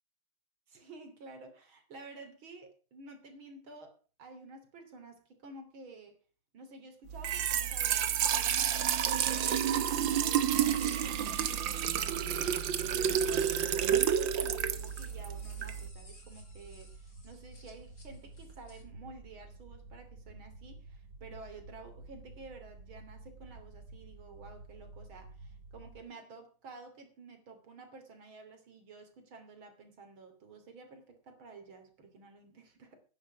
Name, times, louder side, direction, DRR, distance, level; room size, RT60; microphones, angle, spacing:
voice 1, 0.7-6.2 6.5-33.0, right 3 dB, 85° right, 6 dB, 3.8 m, -52 dB
Trickle dribble / Fill (with liquid), 7.1-15.9, right 9 dB, 70° right, 1.7 m, -30 dB
sound 1, 9.4-18.8, left 2 dB, 45° left, 4.2 m, -58 dB
sound 2, 10.7-26.0, right 2 dB, 45° right, 1.8 m, -51 dB
11.5 x 10.0 x 6.1 m, 0.37 s
omnidirectional pair, 2.2 m